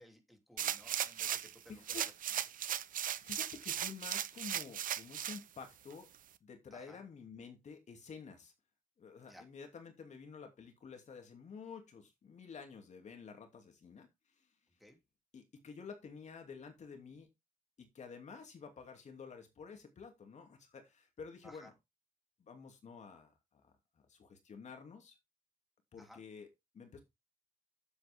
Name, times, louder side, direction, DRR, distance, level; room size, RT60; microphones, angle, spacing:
voice 1, 0.0-1.8 6.7-7.0 9.3-9.4 14.8-15.0 21.4-21.7 26.0-26.2, left 1 dB, ahead, 3 dB, 3.0 m, -58 dB
sound 1, 0.6-1.6 1.9-5.4 5.9-6.0, right 10 dB, 90° right, 0.7 m, -37 dB
voice 2, 1.7-2.1 3.2-6.1 6.4-8.5 9.0-14.1 14.4-14.5 15.3-17.3 17.8-21.7 22.4-25.2 25.9-26.5 26.7-27.0, left 5 dB, 60° left, 5 dB, 2.7 m, -51 dB
10.0 x 8.0 x 3.6 m, 0.21 s
wide cardioid pair, 125°, 14 cm